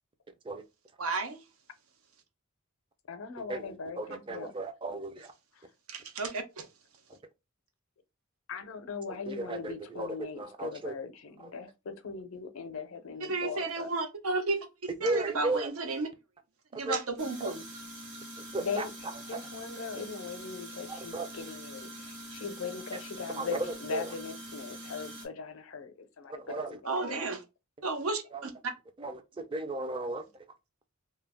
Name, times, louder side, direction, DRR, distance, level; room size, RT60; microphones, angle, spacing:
voice 1, 1.0-1.4 5.9-6.7 13.2-14.6 15.0-16.1 16.7-17.7 26.9-27.4 27.8-28.7, right 3 dB, 85° right, 0.6 m, -32 dB
voice 2, 3.1-4.5 5.5-5.7 8.5-13.9 18.6-27.2, left 5 dB, 70° left, 0.5 m, -40 dB
voice 3, 4.0-5.3 9.3-10.9 15.0-15.7 16.7-17.0 17.4-17.5 18.5-18.8 19.3-19.4 20.9-21.3 23.4-23.6 23.9-24.0 26.4-26.8 28.3-28.4 29.0-30.2, right 2 dB, 25° right, 0.3 m, -35 dB
sound 1, 17.2-25.3, right 1 dB, 60° right, 1.0 m, -44 dB
2.2 x 2.0 x 3.4 m
head